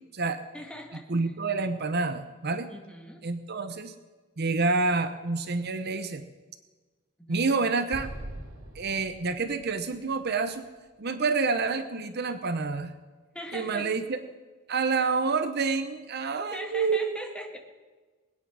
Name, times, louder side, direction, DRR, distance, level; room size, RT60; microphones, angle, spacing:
voice 1, 0.5-1.3 2.7-3.2 7.2-7.5 13.3-13.9 16.4-17.6, equal, 5° left, 2 dB, 1.8 m, -40 dB
voice 2, 1.1-2.7 3.2-3.9 4.4-6.3 7.3-8.1 8.7-10.6 11.0-12.9 13.5-14.2 14.7-17.0, right 4 dB, 50° right, 9 dB, 0.8 m, -28 dB
Explosion, 7.9-11.2, right 1 dB, 75° right, 2.1 m, -43 dB
21.0 x 9.5 x 6.2 m, 1.3 s
head